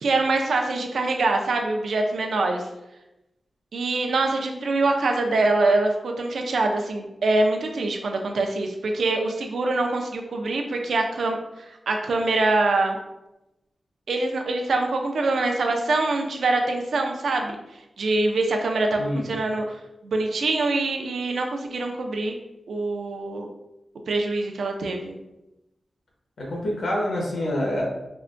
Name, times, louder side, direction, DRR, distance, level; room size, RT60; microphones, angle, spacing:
voice 1, 0.0-2.6 3.7-11.4 11.9-13.0 14.1-17.6 18.0-22.4 22.7-23.5 24.1-25.2, right 2 dB, 85° right, 3 dB, 0.4 m, -24 dB
voice 2, 19.0-19.3 26.4-27.8, left 1 dB, 90° left, -3 dB, 1.0 m, -26 dB
4.4 x 2.1 x 2.5 m, 0.94 s
wide cardioid pair, 155°, 0 cm